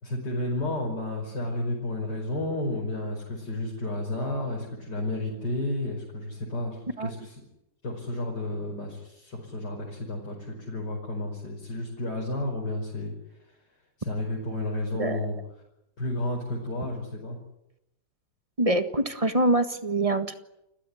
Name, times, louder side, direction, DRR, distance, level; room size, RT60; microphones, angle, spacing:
voice 1, 0.0-7.4 7.8-13.1 14.0-15.4 16.0-17.4, left 1 dB, 70° left, -1 dB, 6.0 m, -32 dB
voice 2, 18.6-20.3, right 1 dB, 20° right, 9 dB, 1.6 m, -24 dB
29.5 x 16.5 x 9.9 m, 0.86 s
omnidirectional pair, 1.9 m